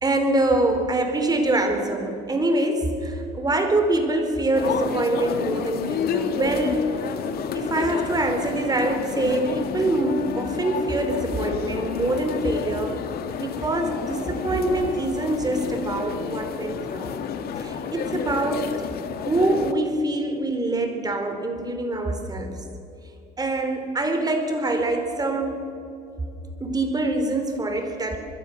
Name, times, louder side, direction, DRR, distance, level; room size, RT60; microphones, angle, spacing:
voice 1, 0.0-7.0 7.5-13.0 13.4-17.1 17.6-18.8 19.2-22.6 23.4-25.7 26.6-28.2, right 2 dB, 25° right, 6 dB, 4.0 m, -24 dB
sound 1, 4.5-19.7, left 7 dB, 65° left, 1.8 m, -30 dB
25.5 x 21.5 x 6.5 m, 2.8 s
cardioid pair, 110°, 17 cm